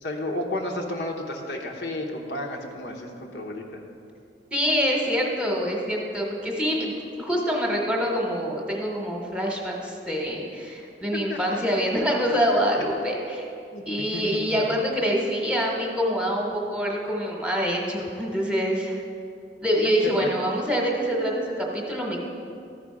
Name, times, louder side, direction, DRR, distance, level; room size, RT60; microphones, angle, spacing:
voice 1, 0.0-3.8 11.3-11.6 12.3-12.4 13.7-13.8 14.1-14.6 20.2-20.3, left 1 dB, 65° left, 1 dB, 1.0 m, -32 dB
voice 2, 4.5-13.4 13.8-19.0 19.6-22.2, equal, 5° right, -1 dB, 1.1 m, -25 dB
13.0 x 4.9 x 4.9 m, 2.5 s
head